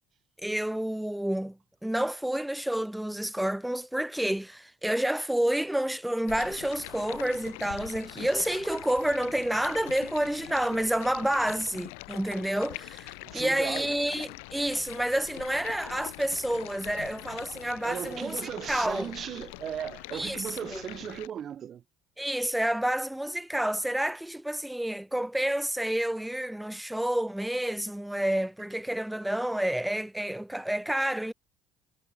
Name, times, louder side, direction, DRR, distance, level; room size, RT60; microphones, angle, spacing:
voice 1, 0.4-1.6 1.8-19.1 20.1-20.8 22.2-31.3, right 1 dB, 5° right, 1.3 m, -29 dB
Stream, 6.3-21.3, left 31 dB, 85° left, 3.3 m, -44 dB
voice 2, 13.2-13.9 17.8-21.8, right 9 dB, 50° right, 2.8 m, -36 dB
hypercardioid pair, 70°, 0 cm